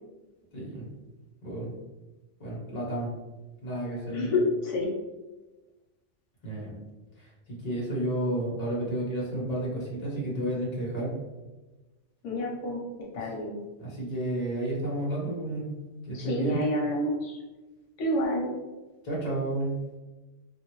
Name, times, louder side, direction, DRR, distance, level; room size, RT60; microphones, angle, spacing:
voice 1, 0.5-0.9 1.4-1.7 2.4-3.1 3.6-4.3 6.4-6.7 7.2-11.1 13.8-15.7 16.1-16.6 19.0-19.8, right 1 dB, 35° left, -5 dB, 1.1 m, -31 dB
voice 2, 4.1-4.9 12.2-12.8 13.1-13.6 16.1-17.4 18.0-18.5, left 1 dB, 90° left, -2 dB, 1.1 m, -28 dB
3.1 x 2.6 x 2.9 m, 1.1 s
omnidirectional pair, 1.2 m